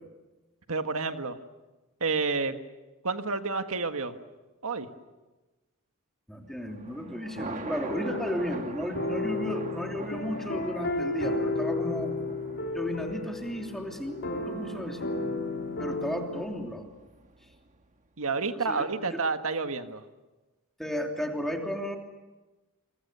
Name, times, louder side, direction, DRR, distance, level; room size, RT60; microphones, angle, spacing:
voice 1, 0.7-1.4 2.0-2.6 3.0-4.2 4.6-4.9 15.2-15.8 18.2-20.0, right 4 dB, 70° right, 7 dB, 1.7 m, -30 dB
voice 2, 6.3-12.1 12.7-15.1 15.8-16.9 18.5-19.2 20.8-22.0, equal, ahead, 2 dB, 3.1 m, -34 dB
Thunder, 6.5-17.9, right 3 dB, 35° right, 1.4 m, -44 dB
sound 1, 7.8-16.4, left 2 dB, 55° left, 3.4 m, -33 dB
28.5 x 24.0 x 6.9 m, 1.1 s
head